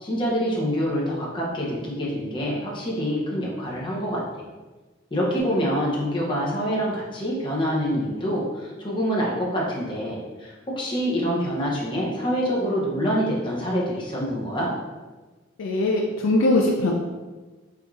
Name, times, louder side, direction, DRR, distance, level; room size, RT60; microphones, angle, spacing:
voice 1, 0.0-4.2 5.1-14.7, equal, 25° left, -4 dB, 0.7 m, -26 dB
voice 2, 15.6-16.9, left 2 dB, 80° left, -1 dB, 0.4 m, -21 dB
4.5 x 2.6 x 2.4 m, 1.3 s
head